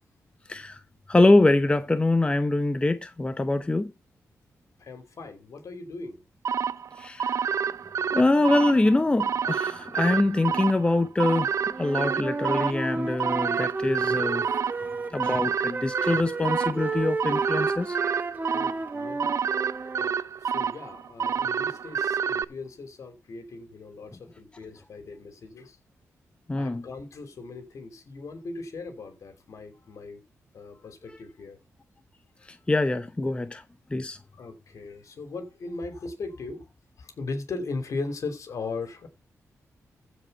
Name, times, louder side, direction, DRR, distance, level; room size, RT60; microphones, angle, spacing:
voice 1, 1.1-3.9 7.0-7.4 8.1-11.5 11.8-14.5 15.1-18.0 26.5-26.8 32.7-33.6 33.9-34.2, left 2 dB, 20° left, 0.8 m, -24 dB
voice 2, 4.8-6.2 18.5-19.3 20.0-20.1 20.4-25.8 26.5-30.2 30.5-31.6 34.4-36.7 37.0-39.1, left 3 dB, 65° left, 3.1 m, -38 dB
sound 1, 6.4-22.4, right 7 dB, 60° right, 0.5 m, -29 dB
Wind instrument woodwind instrument, 11.7-15.4 15.7-20.1, right 3 dB, 30° right, 1.6 m, -32 dB
15.0 x 5.1 x 5.4 m
cardioid pair, 85°, 6 cm